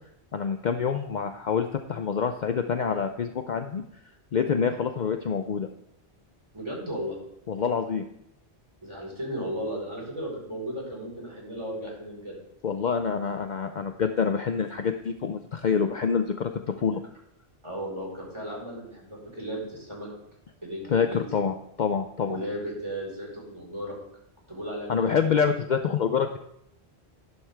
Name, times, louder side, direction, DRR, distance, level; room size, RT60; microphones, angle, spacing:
voice 1, 0.3-3.8 4.3-5.7 7.5-8.0 12.6-16.5 16.8-17.0 20.9-22.4 24.9-26.4, left 6 dB, 50° left, 7 dB, 0.7 m, -26 dB
voice 2, 6.5-7.2 8.8-12.4 17.6-20.1 20.6-21.3 22.2-24.0 24.5-25.5, equal, 25° right, -3 dB, 4.4 m, -35 dB
12.5 x 11.0 x 3.4 m, 0.76 s
omnidirectional pair, 1.1 m